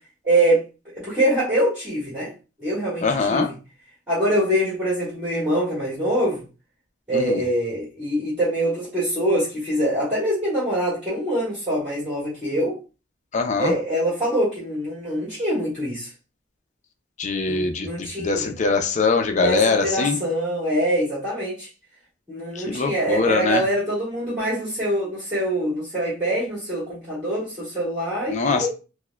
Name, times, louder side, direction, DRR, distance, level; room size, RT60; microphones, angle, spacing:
voice 1, 0.2-0.6 0.9-2.3 2.6-3.5 4.1-6.4 7.1-12.8 13.6-16.1 17.5-18.5 19.4-21.7 22.3-28.7, right 1 dB, 10° right, 1.5 m, -24 dB
voice 2, 3.0-3.5 7.1-7.4 13.3-13.7 17.2-20.2 22.6-23.6 28.3-28.7, left 4 dB, 35° left, 0.4 m, -22 dB
4.6 x 2.1 x 2.2 m
head